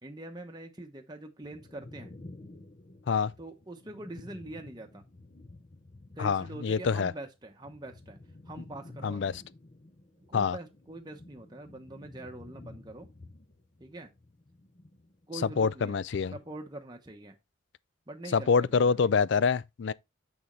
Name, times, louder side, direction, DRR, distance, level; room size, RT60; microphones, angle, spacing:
voice 1, 0.0-2.1 3.4-5.0 6.1-8.2 8.5-9.4 10.3-13.1 13.8-14.1 15.3-16.0 16.3-17.4 18.1-19.0, right 2 dB, 20° right, 0.9 m, -44 dB
sound 1, 1.4-6.7 7.0-15.6 15.9-16.6, left 2 dB, 35° left, 0.8 m, -52 dB
voice 2, 6.2-7.1 9.0-9.4 10.3-10.6 15.6-16.3 18.3-19.9, left 5 dB, 65° left, 0.4 m, -26 dB
7.0 x 6.2 x 3.1 m
head